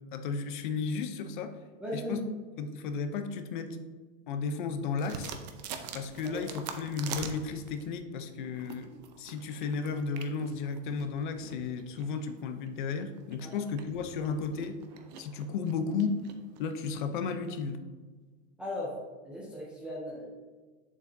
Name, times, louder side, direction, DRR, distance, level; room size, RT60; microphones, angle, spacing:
voice 1, 0.1-1.5 1.9-2.2 2.6-3.7 4.3-5.3 5.9-8.9 9.2-14.8 15.2-16.2 16.6-17.8, left 5 dB, 45° left, 8 dB, 0.7 m, -34 dB
voice 2, 1.8-2.3 6.2-6.5 13.4-13.5 18.6-19.0 19.2-20.3, left 1 dB, 5° right, -6 dB, 0.4 m, -37 dB
sound 1, 5.0-7.9 8.4-17.0, right 7 dB, 40° right, 0.6 m, -45 dB
8.1 x 7.2 x 2.7 m, 1.3 s
supercardioid pair, 175°, 33 cm